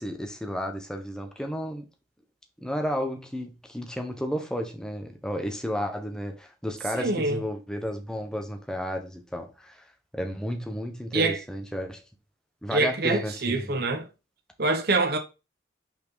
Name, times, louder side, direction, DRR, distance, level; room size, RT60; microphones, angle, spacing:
voice 1, 0.0-1.9 2.6-9.8 10.1-12.0 12.6-13.7, equal, 5° left, 1.0 m, -32 dB
voice 2, 6.9-7.4 11.1-11.4 12.7-14.1 14.6-15.2, right 3 dB, 55° right, 1.0 m, -25 dB
5.8 x 4.6 x 4.0 m
head